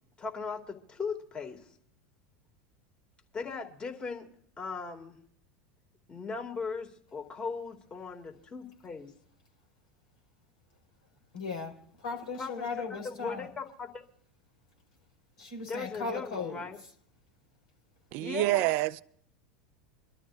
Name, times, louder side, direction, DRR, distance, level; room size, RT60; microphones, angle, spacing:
voice 1, 0.2-1.6 3.3-4.3 4.6-5.2 6.1-9.1 12.4-13.9 15.6-16.8 18.2-18.7, left 5 dB, 25° left, 2.6 m, -38 dB
voice 2, 11.3-13.5 15.4-16.6, left 4 dB, 75° left, 4.9 m, -37 dB
voice 3, 18.1-19.0, right 17 dB, 55° right, 0.5 m, -27 dB
25.5 x 12.5 x 2.6 m
hypercardioid pair, 85°, 4 cm